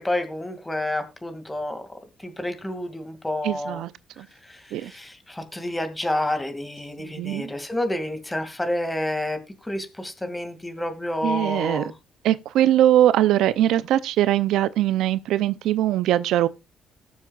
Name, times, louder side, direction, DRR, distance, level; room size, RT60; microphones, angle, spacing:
voice 1, 0.0-1.9 2.2-3.8 4.4-12.0, left 1 dB, 10° left, 2.2 m, -29 dB
voice 2, 3.4-3.9 4.2-4.3 4.7-4.9 7.0-7.5 11.2-11.9 12.2-16.5, right 12 dB, 85° right, 0.5 m, -21 dB
19.5 x 7.2 x 2.4 m
cardioid pair, 90°, 0 cm